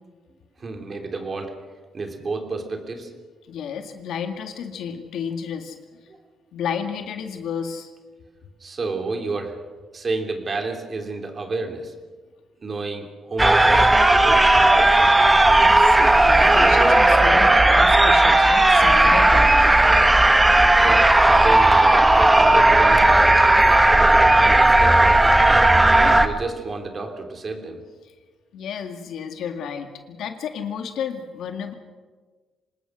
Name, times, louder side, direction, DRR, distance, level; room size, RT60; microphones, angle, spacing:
voice 1, 0.6-1.6 1.9-3.1 6.1-6.2 8.6-9.6 9.9-12.0 12.6-15.2 20.6-22.1 22.3-23.4 23.9-25.4 25.7-27.8, right 3 dB, 35° right, 5 dB, 3.1 m, -31 dB
voice 2, 3.5-6.0 6.5-7.9 15.6-19.8 25.9-26.2 28.0-28.1 28.5-31.7, left 7 dB, 75° left, 6 dB, 2.1 m, -32 dB
sound 1, 13.4-26.3, right 2 dB, 15° right, 1.3 m, -15 dB
26.0 x 19.5 x 6.4 m, 1.4 s
cardioid pair, 90°, 0 cm